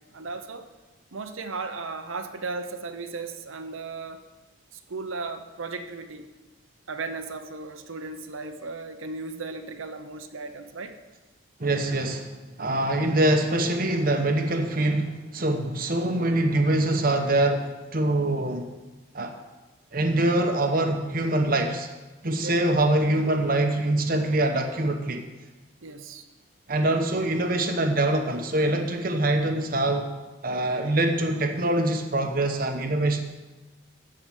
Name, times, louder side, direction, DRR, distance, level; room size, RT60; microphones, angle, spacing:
voice 1, 0.1-0.7 1.1-4.2 4.7-6.3 6.9-11.0 22.4-22.6 25.8-26.2, right 3 dB, 85° right, 8 dB, 0.9 m, -36 dB
voice 2, 11.6-18.7 19.1-19.3 19.9-21.9 22.2-25.2 26.7-30.1 30.4-33.2, right 1 dB, 45° right, 5 dB, 0.9 m, -24 dB
13.5 x 4.8 x 7.5 m, 1.2 s
head